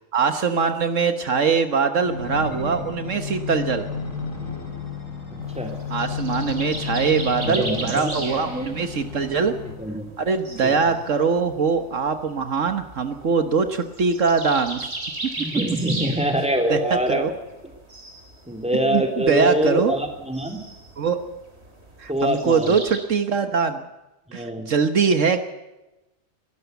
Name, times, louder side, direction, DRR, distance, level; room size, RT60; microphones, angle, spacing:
voice 1, 0.1-3.9 5.9-9.5 10.2-14.9 16.7-17.3 18.8-19.9 21.0-21.2 22.0-23.9 24.3-25.4, right 5 dB, 70° right, 8 dB, 1.6 m, -22 dB
sound 1, 2.0-10.0 10.6-11.8 12.4-12.5, left 5 dB, 75° left, 3.5 m, -33 dB
sound 2, 5.4-23.0, right 2 dB, 50° right, 3.8 m, -37 dB
voice 2, 7.4-8.7 9.6-10.1 10.6-10.7 15.4-17.3 18.5-20.6 22.1-22.7 24.3-24.7, equal, 5° right, 4 dB, 3.2 m, -24 dB
22.5 x 14.0 x 8.2 m, 1.0 s
omnidirectional pair, 1.4 m